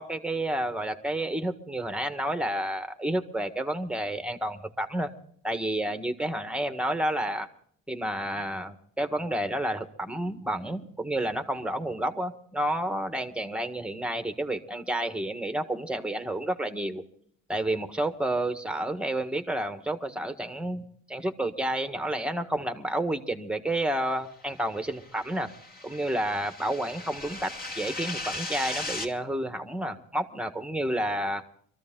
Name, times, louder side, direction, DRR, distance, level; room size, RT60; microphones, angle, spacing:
voice 1, 0.0-5.1 5.4-7.5 7.9-17.0 17.5-25.5 25.8-31.4, right 1 dB, 5° right, 8 dB, 1.5 m, -30 dB
sound 1, 24.6-29.1, left 2 dB, 30° left, 2.6 m, -37 dB
23.5 x 14.0 x 3.8 m, 0.62 s
cardioid pair, 90°, 30 cm